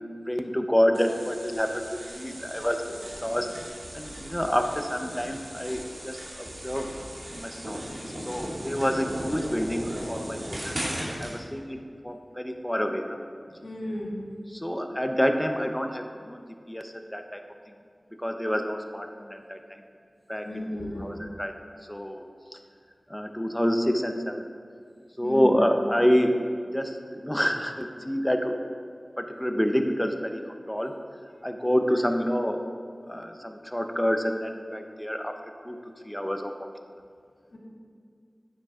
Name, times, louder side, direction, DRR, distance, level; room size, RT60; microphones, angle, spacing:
voice 1, 0.3-2.8 3.2-3.5 3.9-6.9 7.3-10.8 11.2-13.2 14.5-17.4 18.2-19.6 20.3-20.7 21.0-21.6 21.9-22.2 23.1-24.5 25.2-26.4 26.7-28.6 29.2-30.4 30.7-31.0 31.4-32.6 33.1-35.3 35.6-35.8 36.0-36.7, equal, 10° left, 5 dB, 0.7 m, -28 dB
sound 1, 0.9-11.3, equal, 60° right, 2.5 m, -37 dB
voice 2, 13.6-14.2 20.4-21.1 25.2-25.6 37.5-37.6, left 1 dB, 80° left, -5 dB, 2.3 m, -34 dB
9.8 x 9.1 x 3.7 m, 2.2 s
wide cardioid pair, 60°, 0 cm